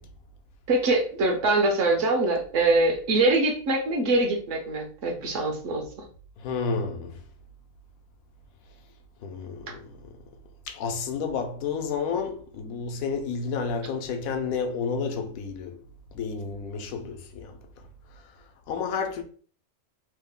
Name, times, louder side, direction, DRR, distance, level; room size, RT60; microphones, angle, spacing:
voice 1, 0.7-5.9, right 2 dB, 65° right, 1.0 m, -23 dB
voice 2, 6.4-7.2 9.2-9.9 10.7-15.8 16.1-17.6 18.7-19.2, left 5 dB, 80° left, 1.0 m, -30 dB
3.1 x 2.1 x 3.6 m
omnidirectional pair, 1.5 m